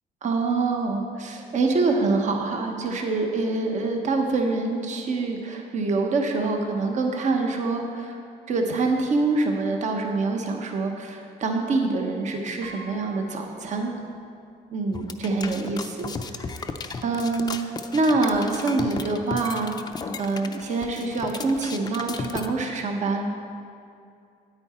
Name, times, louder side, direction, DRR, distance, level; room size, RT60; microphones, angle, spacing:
voice 1, 0.2-8.2 8.5-13.9 14.7-16.5 17.0-19.7 20.2-23.3, right 3 dB, 45° right, 3 dB, 1.1 m, -25 dB
Piano, 12.6-14.4 14.8-14.9 16.0-16.1 16.4-16.7, right 2 dB, 90° right, 1.1 m, -47 dB
sound 1, 14.9-22.5, left 4 dB, 25° left, 0.5 m, -34 dB
9.5 x 8.7 x 4.3 m, 2.4 s
cardioid pair, 110°, 17 cm